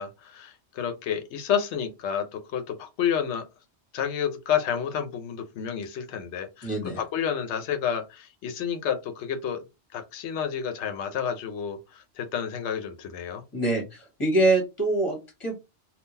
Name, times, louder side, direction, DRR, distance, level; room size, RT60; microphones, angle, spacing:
voice 1, 0.0-3.4 3.9-9.6 9.9-13.4, left 8 dB, 85° left, 0.9 m, -30 dB
voice 2, 6.6-7.0 13.5-15.6, right 2 dB, 30° left, 1.3 m, -25 dB
3.6 x 2.3 x 2.7 m
omnidirectional pair, 1.1 m